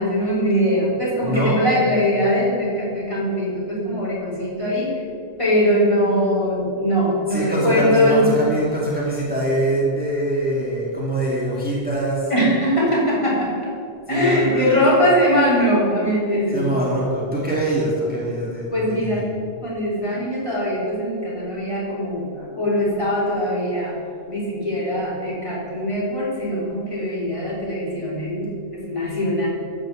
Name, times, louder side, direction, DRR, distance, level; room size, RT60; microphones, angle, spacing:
voice 1, 0.0-5.0 5.4-8.4 12.3-13.5 14.1-16.8 18.7-19.3 19.6-23.9 24.3-29.5, equal, 30° left, -7 dB, 3.6 m, -21 dB
voice 2, 1.2-1.6 7.3-12.3 14.1-14.8 16.5-19.2, right 1 dB, 10° right, -6 dB, 2.1 m, -24 dB
13.5 x 6.1 x 7.1 m, 2.4 s
omnidirectional pair, 1.0 m